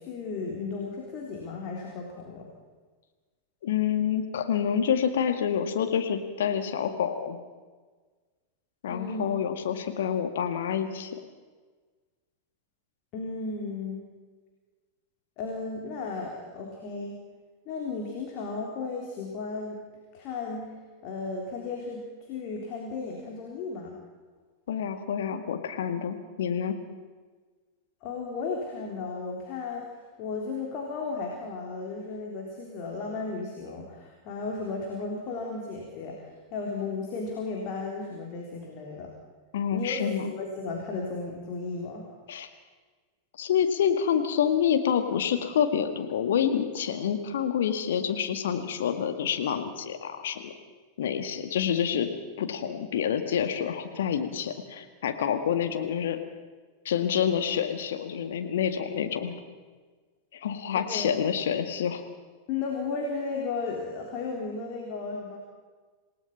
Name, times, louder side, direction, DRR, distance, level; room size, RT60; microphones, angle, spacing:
voice 1, 0.0-2.5 8.9-9.2 13.1-14.0 15.4-17.2 17.7-19.8 20.1-20.7 21.0-24.0 28.0-29.9 30.2-39.1 39.7-42.0 60.7-61.1 62.5-65.4, left 4 dB, 40° left, 0 dB, 3.8 m, -34 dB
voice 2, 3.6-7.4 8.8-11.1 24.7-26.8 39.5-40.3 42.3-42.5 43.4-50.5 51.0-52.1 52.4-56.2 56.9-59.3 60.3-62.0, left 8 dB, 60° left, 7 dB, 1.9 m, -27 dB
27.5 x 18.0 x 5.8 m, 1.4 s
figure-of-eight pair, 90°, 0 cm